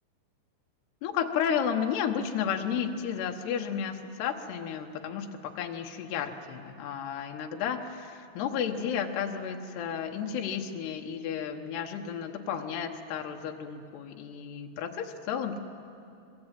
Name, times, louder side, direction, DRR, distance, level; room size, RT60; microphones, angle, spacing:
voice 1, 1.0-15.6, left 8 dB, 80° left, 4 dB, 3.3 m, -32 dB
25.0 x 22.0 x 9.1 m, 2.6 s
omnidirectional pair, 4.7 m